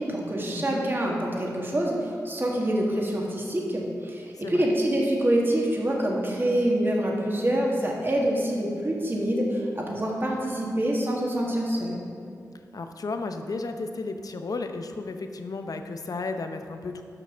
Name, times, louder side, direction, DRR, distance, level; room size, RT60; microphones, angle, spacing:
voice 1, 0.0-12.0, right 1 dB, 35° right, -2 dB, 1.8 m, -26 dB
voice 2, 0.5-0.9 4.3-4.7 12.7-17.0, left 3 dB, 60° left, 7 dB, 0.6 m, -33 dB
6.8 x 5.9 x 6.0 m, 2.4 s
cardioid pair, 45°, 7 cm